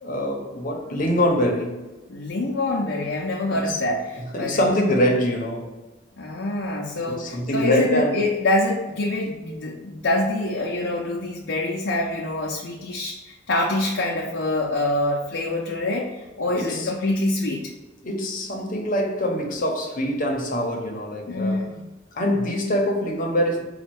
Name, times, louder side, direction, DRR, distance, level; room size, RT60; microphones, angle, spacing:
voice 1, 0.0-1.9 3.7-3.8 4.3-5.8 7.0-8.2 16.5-16.9 18.0-21.7 22.1-23.6, equal, 45° left, 0.8 m, -24 dB
voice 2, 2.1-4.6 6.2-17.7 21.3-21.8, left 2 dB, 70° left, 0.6 m, -25 dB
4.2 x 2.3 x 4.6 m
head